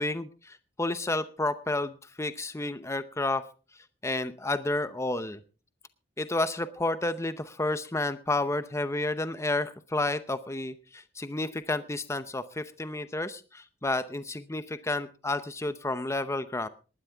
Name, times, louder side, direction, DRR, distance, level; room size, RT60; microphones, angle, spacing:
voice 1, 0.0-3.4 4.0-5.4 6.2-16.7, left 2 dB, 15° left, 12 dB, 0.7 m, -31 dB
19.5 x 11.5 x 3.5 m, 0.36 s
head